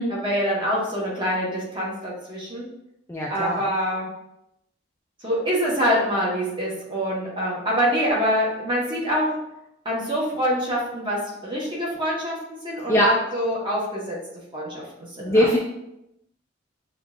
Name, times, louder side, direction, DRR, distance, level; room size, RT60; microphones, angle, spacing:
voice 1, 0.1-2.7 3.3-4.1 5.2-9.3 9.8-14.2 14.5-14.8 15.1-15.5, equal, 25° right, -5 dB, 1.2 m, -25 dB
voice 2, 3.1-3.6 12.9-13.1 15.2-15.6, equal, 15° left, -3 dB, 0.4 m, -20 dB
6.2 x 2.4 x 2.4 m, 0.84 s
head